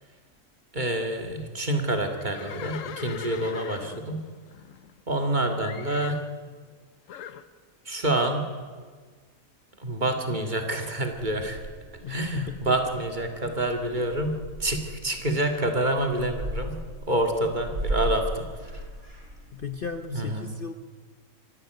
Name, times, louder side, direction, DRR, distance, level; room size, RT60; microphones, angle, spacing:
voice 1, 0.7-4.3 5.1-6.2 7.9-8.5 9.8-11.6 12.1-18.5 20.1-20.5, right 1 dB, 35° right, 5 dB, 2.2 m, -27 dB
Livestock farm animals working animals, 2.2-5.3 5.6-6.3 7.1-7.5, left 9 dB, 70° left, 1.2 m, -40 dB
Purr / Meow, 11.1-19.9, right 1 dB, 80° right, 8.3 m, -37 dB
voice 2, 12.0-12.6 19.5-20.7, left 7 dB, 45° left, 9 dB, 0.9 m, -35 dB
25.5 x 12.0 x 9.2 m, 1.5 s
omnidirectional pair, 1.5 m